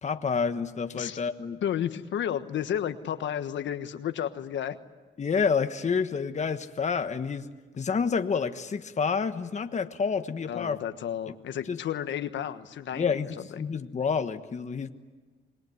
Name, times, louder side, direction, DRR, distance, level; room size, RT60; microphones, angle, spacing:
voice 1, 0.0-1.6 5.2-7.5 7.8-10.8 11.3-11.4 11.7-11.8 12.9-14.9, left 5 dB, 35° left, 8 dB, 1.3 m, -29 dB
voice 2, 1.6-4.8 10.5-13.1 13.4-13.5, left 9 dB, 70° left, 10 dB, 1.4 m, -32 dB
27.0 x 20.5 x 9.5 m, 1.4 s
cardioid pair, 90°, 20 cm